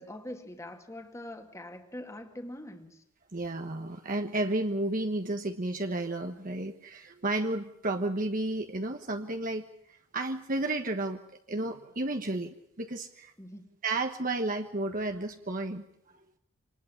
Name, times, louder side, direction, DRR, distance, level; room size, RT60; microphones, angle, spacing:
voice 1, 0.0-3.0 13.4-13.7, left 1 dB, 15° left, 5 dB, 2.3 m, -43 dB
voice 2, 3.3-9.7 10.1-11.2 11.5-13.3 13.8-15.8, right 2 dB, 40° right, 5 dB, 1.3 m, -32 dB
26.0 x 20.0 x 7.2 m, 0.77 s
head